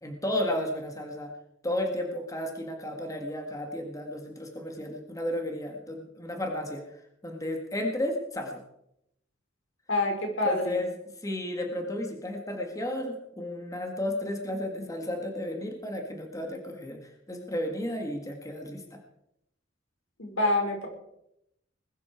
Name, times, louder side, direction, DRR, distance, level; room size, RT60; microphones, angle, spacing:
voice 1, 0.0-1.3 1.6-8.6 10.5-10.9 11.2-19.0, left 1 dB, 15° left, 3 dB, 1.9 m, -33 dB
voice 2, 9.9-10.8 20.2-20.9, left 2 dB, 80° left, 1 dB, 5.1 m, -27 dB
20.5 x 12.0 x 4.6 m, 0.78 s
head